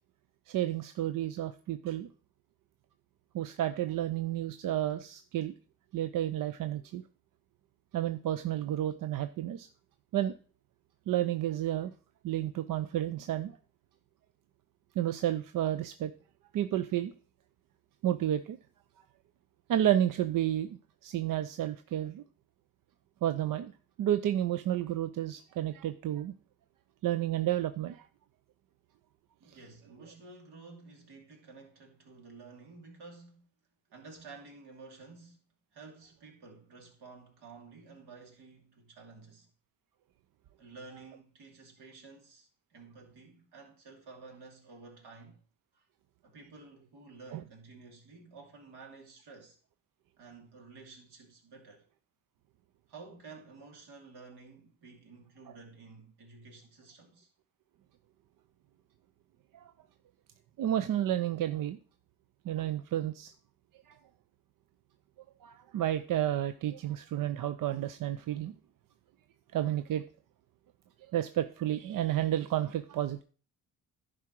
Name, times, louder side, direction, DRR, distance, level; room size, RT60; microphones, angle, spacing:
voice 1, 0.5-2.1 3.3-5.5 5.9-7.0 7.9-9.7 10.1-10.3 11.1-11.9 12.2-13.5 15.0-16.1 16.5-17.1 18.0-18.6 19.7-20.7 21.0-22.2 23.2-23.7 24.0-26.3 27.0-28.0 47.3-47.4 59.5-59.7 60.6-61.8 62.4-63.3 63.9-64.0 65.4-68.5 69.5-70.0 71.1-73.2, right 12 dB, 55° right, 0.6 m, -31 dB
voice 2, 29.4-33.5 33.9-35.4 35.7-39.5 40.6-45.4 45.7-45.8 46.2-49.6 50.2-51.9 52.9-57.3, right 4 dB, 70° right, 2.6 m, -52 dB
11.0 x 5.0 x 4.5 m
supercardioid pair, 65°, 41 cm